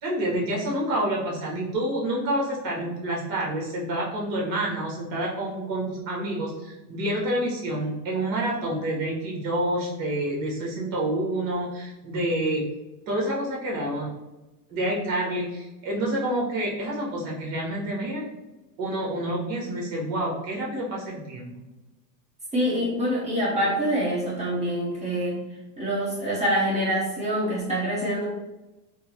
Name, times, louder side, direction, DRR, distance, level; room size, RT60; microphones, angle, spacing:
voice 1, 0.0-12.7 13.1-14.1 14.7-18.3 18.8-21.6, right 1 dB, 45° right, -3 dB, 1.3 m, -28 dB
voice 2, 22.5-25.4 25.8-28.3, equal, 15° right, -6 dB, 1.0 m, -25 dB
3.5 x 2.1 x 2.9 m, 1.0 s
supercardioid pair, 120°, 50 cm